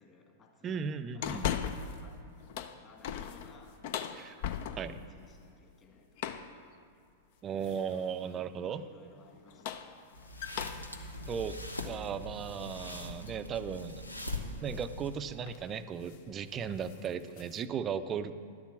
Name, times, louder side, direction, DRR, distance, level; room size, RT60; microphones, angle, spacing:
voice 1, 0.0-0.8 1.1-1.4 1.8-2.2 2.7-3.8 4.9-6.1 8.7-10.1 18.3-18.5, left 4 dB, 25° left, 1 dB, 2.0 m, -58 dB
voice 2, 0.6-1.6 4.1-4.4 4.7-5.0 7.4-8.8 11.3-11.6 11.8-14.0 14.6-18.4, right 7 dB, 25° right, 11 dB, 0.5 m, -36 dB
sound 1, 1.2-2.1 2.4-5.1 6.2-6.6 7.6-8.1 9.3-12.8 13.3-13.4 14.9-15.1 15.4-15.7 16.0-16.3 16.6-17.6, left 9 dB, 50° left, 0.6 m, -39 dB
sound 2, 10.1-15.4, left 1 dB, 85° left, 0.8 m, -42 dB
11.5 x 7.2 x 6.1 m, 2.3 s
figure-of-eight pair, 95°, 0 cm